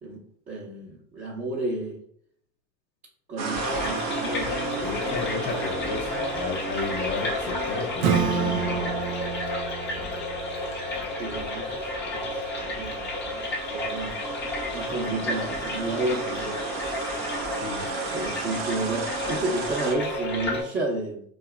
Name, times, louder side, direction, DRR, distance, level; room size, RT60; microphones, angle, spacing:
voice 1, 0.0-2.0 3.3-4.5 11.2-12.4 12.6-13.1 13.7-14.3 14.7-16.8 18.1-21.2, right 2 dB, 15° right, -9 dB, 0.7 m, -31 dB
sound 1, 3.4-19.9, right 5 dB, 85° right, 0.6 m, -36 dB
sound 2, 3.5-20.6, left 2 dB, 20° left, 0.8 m, -31 dB
voice 2, 4.8-9.0 17.6-18.0, left 4 dB, 85° left, -3 dB, 0.7 m, -33 dB
Acoustic guitar / Strum, 8.0-13.2, right 6 dB, 50° right, 0.6 m, -30 dB
2.8 x 2.3 x 2.3 m, 0.67 s
hypercardioid pair, 95°, 50 cm